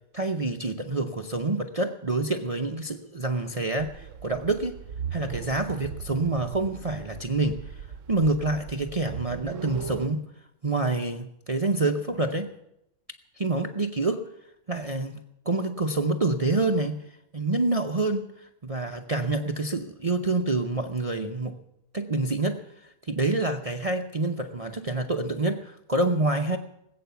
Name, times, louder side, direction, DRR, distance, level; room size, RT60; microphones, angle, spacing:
voice 1, 0.1-4.8 5.1-10.2 10.6-12.5 13.4-14.2 14.7-15.2 15.5-17.0 17.3-21.6 21.9-26.6, right 2 dB, 35° right, 5 dB, 0.6 m, -27 dB
sound 1, 3.8-10.1, right 7 dB, 65° right, 1.0 m, -38 dB
19.5 x 8.6 x 6.9 m, 0.81 s
omnidirectional pair, 1.6 m